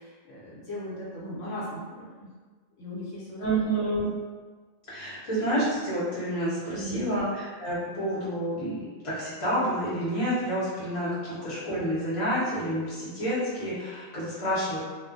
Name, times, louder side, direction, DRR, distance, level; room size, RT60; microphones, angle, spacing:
voice 1, 0.0-2.3 2.8-3.7 6.7-7.2 11.2-11.5, left 1 dB, 70° left, -8 dB, 1.0 m, -38 dB
voice 2, 3.4-4.1 4.9-14.8, right 1 dB, 30° left, -9 dB, 0.7 m, -29 dB
2.4 x 2.0 x 2.5 m, 1.4 s
omnidirectional pair, 1.4 m